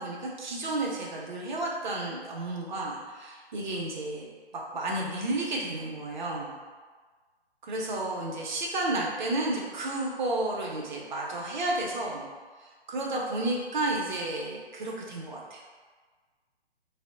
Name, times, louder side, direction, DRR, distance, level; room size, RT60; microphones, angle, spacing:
voice 1, 0.0-4.3 4.5-6.6 7.6-12.3 12.6-15.6, right 2 dB, 45° right, -2 dB, 0.5 m, -32 dB
2.6 x 2.0 x 2.4 m, 1.4 s
figure-of-eight pair, 140°, 33 cm